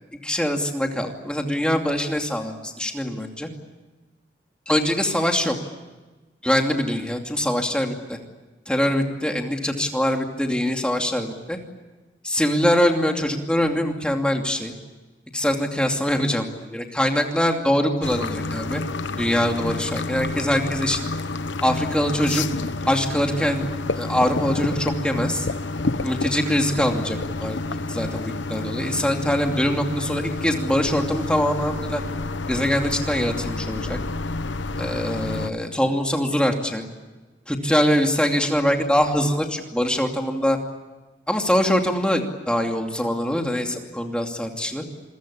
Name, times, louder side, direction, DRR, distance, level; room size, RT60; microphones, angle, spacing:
voice 1, 0.2-3.5 4.7-5.5 6.4-8.2 8.7-11.6 12.2-14.7 15.3-18.8 19.2-21.0 21.6-22.5 22.9-25.5 26.0-32.0 32.5-34.0 34.8-36.8 37.5-40.6 41.3-44.8, equal, 5° left, 3 dB, 2.6 m, -23 dB
sound 1, 18.0-35.5, left 3 dB, 80° left, 1.0 m, -29 dB
28.0 x 22.5 x 8.6 m, 1.2 s
head